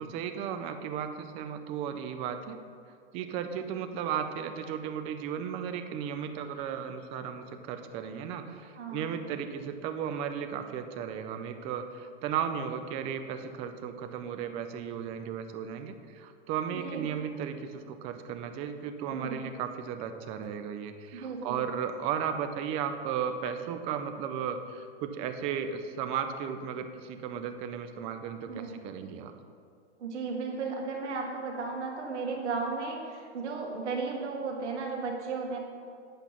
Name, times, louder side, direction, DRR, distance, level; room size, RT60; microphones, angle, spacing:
voice 1, 0.0-2.6 3.1-29.3, right 8 dB, 20° right, 7 dB, 0.3 m, -35 dB
voice 2, 8.8-9.1 16.7-17.0 19.0-19.4 21.1-21.6 28.5-28.8 30.0-35.6, right 4 dB, 75° right, 1 dB, 1.9 m, -35 dB
8.2 x 5.2 x 5.9 m, 2.3 s
hypercardioid pair, 125°, 35 cm